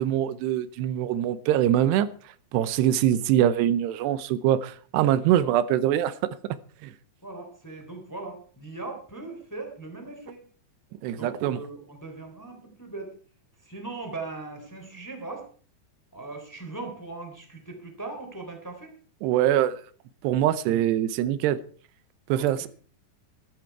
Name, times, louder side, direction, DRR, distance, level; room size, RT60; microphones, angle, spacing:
voice 1, 0.0-2.1 2.5-6.1 6.8-6.9 11.0-11.6 19.2-19.8 20.2-21.6 22.3-22.7, right 11 dB, 90° right, 2.9 m, -23 dB
voice 2, 2.9-3.2 5.3-5.5 7.2-10.4 11.1-13.1 13.6-15.5 16.1-18.9 22.3-22.7, right 3 dB, 5° left, 2.7 m, -39 dB
15.0 x 13.5 x 4.7 m
omnidirectional pair, 4.7 m